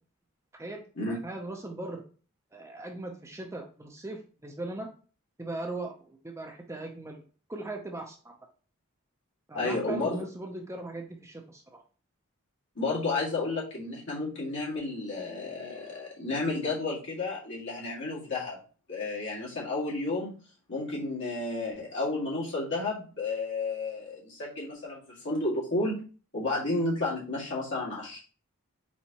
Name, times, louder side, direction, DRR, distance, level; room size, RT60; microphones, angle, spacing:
voice 1, 0.5-2.0 2.5-4.9 5.4-7.2 7.5-8.3 9.5-11.6, right 2 dB, 15° right, 2 dB, 0.5 m, -39 dB
voice 2, 9.5-10.2 12.8-18.6 18.9-20.3 20.7-26.0 26.3-28.2, left 2 dB, 55° left, -6 dB, 2.0 m, -32 dB
4.4 x 4.2 x 2.9 m, 0.38 s
head